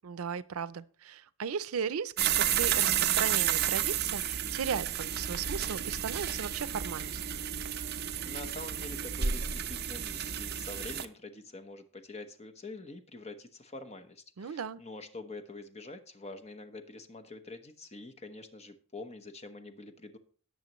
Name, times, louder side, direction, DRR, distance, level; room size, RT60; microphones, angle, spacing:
voice 1, 0.0-7.2 14.4-14.8, right 6 dB, 90° right, 0.5 m, -36 dB
sound 1, 2.2-11.0, right 9 dB, 50° right, 0.6 m, -31 dB
voice 2, 8.2-20.2, left 2 dB, 30° left, 1.1 m, -46 dB
17.5 x 6.6 x 3.1 m
head